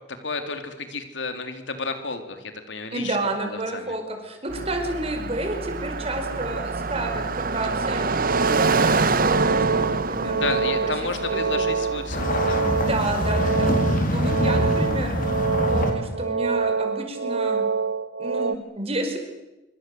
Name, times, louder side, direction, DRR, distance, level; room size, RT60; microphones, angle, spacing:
voice 1, 0.0-3.2 3.5-3.9 10.4-12.6, left 4 dB, 80° left, 7 dB, 3.3 m, -32 dB
voice 2, 2.9-8.2 8.5-10.5 10.8-11.6 12.7-15.1 15.7-17.6 18.2-19.2, right 2 dB, 35° right, 4 dB, 5.0 m, -30 dB
Car passing by, 4.5-15.6, right 3 dB, 50° right, 1.3 m, -27 dB
sound 1, 8.0-18.6, right 5 dB, 70° right, 0.8 m, -26 dB
sound 2, 12.1-15.9, left 1 dB, 50° left, 4.3 m, -24 dB
26.0 x 25.0 x 7.8 m, 1.0 s
head